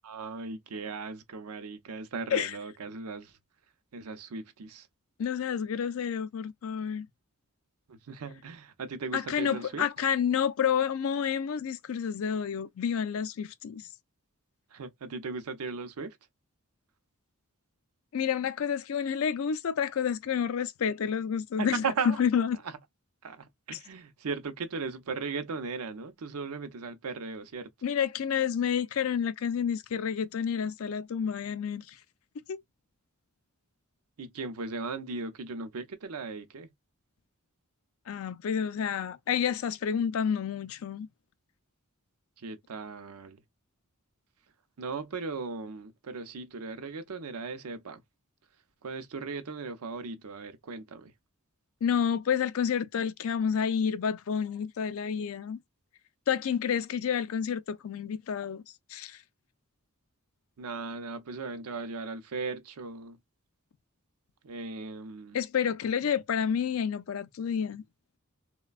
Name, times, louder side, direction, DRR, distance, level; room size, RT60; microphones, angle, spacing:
voice 1, 0.0-3.4 3.9-4.9 7.9-9.9 14.7-16.2 21.6-22.2 22.6-22.8 23.2-27.7 34.2-36.7 42.4-43.4 44.8-48.0 48.8-51.1 60.6-63.2 64.4-65.4, right 4 dB, 90° right, 0.6 m, -37 dB
voice 2, 5.2-7.1 9.1-13.9 18.1-22.6 23.7-23.8 27.8-32.0 32.5-32.6 38.1-41.1 51.8-55.6 56.3-58.6 58.9-59.2 65.3-67.8, left 7 dB, 70° left, 0.4 m, -29 dB
3.1 x 2.2 x 2.3 m
head